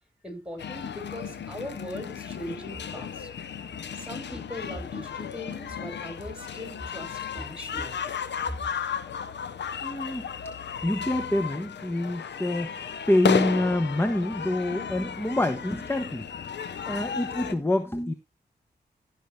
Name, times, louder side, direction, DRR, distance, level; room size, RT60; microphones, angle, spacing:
voice 1, 0.2-3.3 4.0-8.0, left 1 dB, 5° right, 5.1 m, -39 dB
sound 1, 0.6-17.5, left 7 dB, 85° left, 0.8 m, -34 dB
voice 2, 9.8-10.3 10.6-12.8 13.1-16.3 16.8-18.1, left 1 dB, 15° left, 1.0 m, -27 dB
14.5 x 5.9 x 3.2 m
cardioid pair, 55°, 18 cm